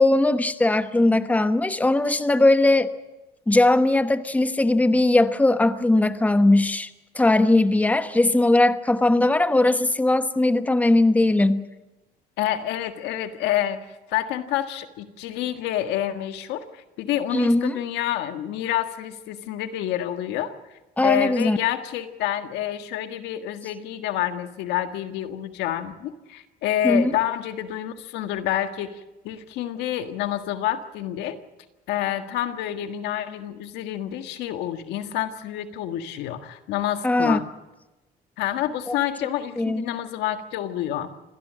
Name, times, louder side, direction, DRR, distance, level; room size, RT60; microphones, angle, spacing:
voice 1, 0.0-2.9 3.5-6.9 7.1-11.7 17.3-17.8 21.0-21.6 26.8-27.1 37.0-37.4 38.9-39.0 39.6-39.9, left 2 dB, 10° left, 1.1 m, -19 dB
voice 2, 12.4-13.8 14.1-31.4 31.9-37.5 38.4-41.1, left 12 dB, 90° left, 1.7 m, -28 dB
26.5 x 16.5 x 7.6 m
cardioid pair, 110°, 17 cm